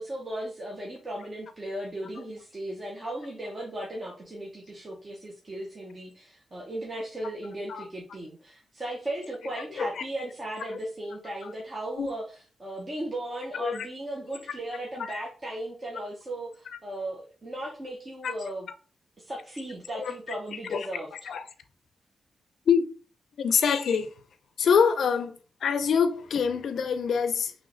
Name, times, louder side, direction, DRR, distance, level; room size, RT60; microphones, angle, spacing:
voice 1, 0.0-18.7 19.2-21.1, right 1 dB, 25° right, 0.7 m, -36 dB
voice 2, 23.4-24.1 24.6-27.5, left 6 dB, 70° left, 0.5 m, -25 dB
3.1 x 3.0 x 3.8 m
wide cardioid pair, 155°, 0 cm